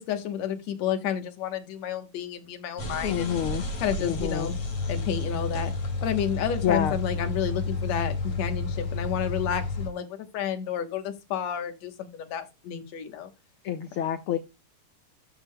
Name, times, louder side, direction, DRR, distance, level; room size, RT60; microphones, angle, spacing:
voice 1, 0.0-3.3 3.8-4.6 4.9-5.7 6.0-13.3, left 9 dB, 70° left, 2.3 m, -31 dB
sound 1, 2.8-9.9, left 3 dB, 50° left, 3.2 m, -31 dB
voice 2, 3.0-3.6 4.0-4.5 6.6-7.0 13.6-14.4, left 9 dB, 85° left, 1.2 m, -27 dB
13.0 x 6.6 x 2.2 m
omnidirectional pair, 3.3 m